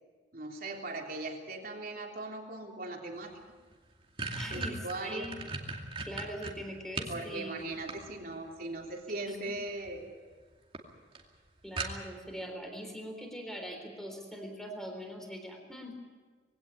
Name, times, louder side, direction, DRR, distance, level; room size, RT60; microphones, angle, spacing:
voice 1, 0.3-3.3 4.5-5.3 7.1-10.1, right 2 dB, 50° right, 1 dB, 3.4 m, -39 dB
sound 1, 3.3-3.4 3.7-7.2 7.6-8.5 9.6-10.0 10.3-10.4 10.7-10.8 11.1-11.2 11.8-12.3, right 3 dB, 30° right, 2.5 m, -38 dB
voice 2, 4.4-5.4 6.0-7.5 11.6-16.0, equal, ahead, 4 dB, 3.7 m, -42 dB
21.5 x 17.0 x 8.5 m, 1.5 s
head